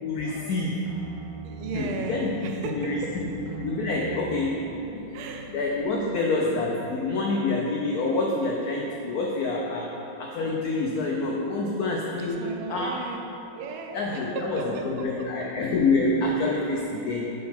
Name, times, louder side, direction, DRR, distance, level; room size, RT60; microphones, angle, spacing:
voice 1, 0.0-0.8 1.7-2.3 2.7-3.3 3.6-4.5 4.9-5.0 5.5-9.9 10.2-12.9 13.9-17.3, left 3 dB, 90° left, -1 dB, 0.8 m, -27 dB
sound 1, 0.9-6.0, right 3 dB, 65° right, 1.3 m, -41 dB
voice 2, 1.4-3.0 5.1-5.6 12.2-13.3 13.5-15.3, right 4 dB, 85° right, 2 dB, 1.5 m, -35 dB
8.3 x 3.9 x 4.3 m, 3.0 s
omnidirectional pair, 2.3 m